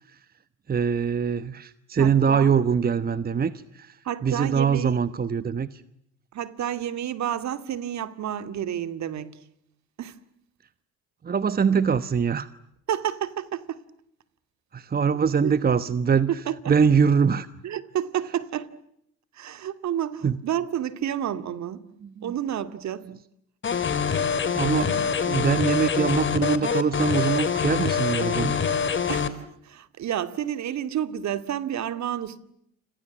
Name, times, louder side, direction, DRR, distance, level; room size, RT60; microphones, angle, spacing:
voice 1, 0.7-4.0 4.2-5.8 11.2-12.5 14.7-16.3 16.7-17.5 20.2-20.3 22.0-22.3 23.1-23.2 24.5-28.6, right 6 dB, 25° right, 1.1 m, -23 dB
voice 2, 2.0-2.6 4.0-5.0 6.3-9.4 10.0-10.2 12.9-13.8 15.4-15.5 16.3-16.7 17.6-18.7 19.3-21.8 22.2-23.1 29.1-32.4, right 10 dB, 50° right, 2.4 m, -30 dB
sound 1, 23.6-29.3, left 6 dB, 30° left, 3.2 m, -25 dB
29.5 x 27.0 x 7.4 m
hypercardioid pair, 75°, 37 cm